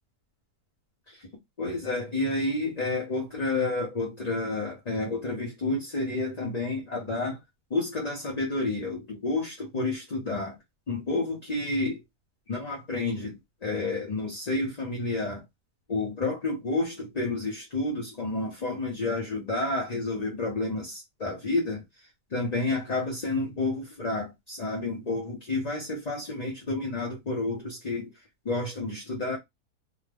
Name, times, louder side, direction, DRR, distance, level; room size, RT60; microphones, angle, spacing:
voice 1, 1.6-7.4 7.7-10.6 10.9-12.0 12.5-13.3 13.6-15.4 15.9-21.8 22.3-28.1 28.4-29.4, left 2 dB, 35° left, 0.8 m, -30 dB
2.8 x 2.5 x 3.4 m
omnidirectional pair, 1.7 m